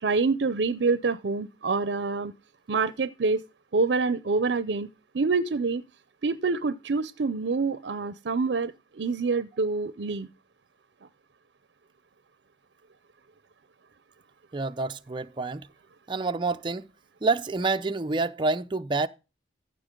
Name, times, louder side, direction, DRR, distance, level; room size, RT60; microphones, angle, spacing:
voice 1, 0.0-2.3 2.7-3.4 3.7-4.9 5.1-5.8 6.2-10.3, right 4 dB, 75° right, 0.5 m, -26 dB
voice 2, 14.5-15.7 16.1-16.9 17.2-19.1, right 3 dB, 25° right, 0.5 m, -28 dB
15.0 x 5.8 x 3.7 m
head